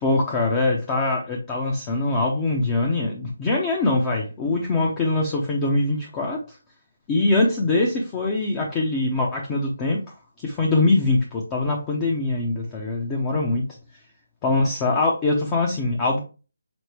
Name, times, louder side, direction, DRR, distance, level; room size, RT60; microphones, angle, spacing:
voice 1, 0.0-6.6 7.1-10.0 10.4-13.6 14.4-16.2, left 2 dB, 15° left, -1 dB, 0.6 m, -23 dB
6.0 x 2.1 x 3.3 m, 0.33 s
figure-of-eight pair, 160°, 0 cm